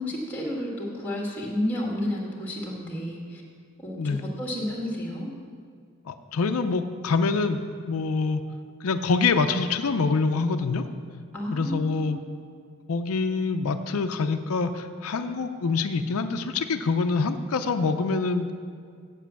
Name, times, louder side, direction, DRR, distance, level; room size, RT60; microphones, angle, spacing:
voice 1, 0.0-3.4 3.8-5.3 11.3-12.1, left 1 dB, 10° left, -2 dB, 1.7 m, -31 dB
voice 2, 6.1-8.4 8.8-10.8 11.5-12.2 12.9-18.5, left 4 dB, 70° left, 7 dB, 0.5 m, -25 dB
8.2 x 7.4 x 6.9 m, 2.1 s
head